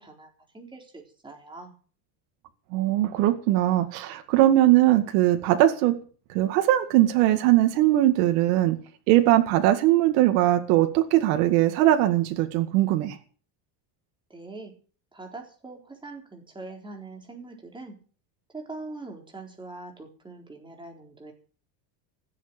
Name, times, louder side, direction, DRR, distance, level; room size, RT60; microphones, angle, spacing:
voice 1, 0.0-1.7 14.3-14.7 15.1-18.0 18.5-21.3, right 3 dB, 10° right, 4.1 m, -42 dB
voice 2, 2.7-6.0 6.3-8.8 9.1-13.2, right 14 dB, 85° right, 2.1 m, -20 dB
16.0 x 7.7 x 8.9 m
cardioid pair, 155°, 47 cm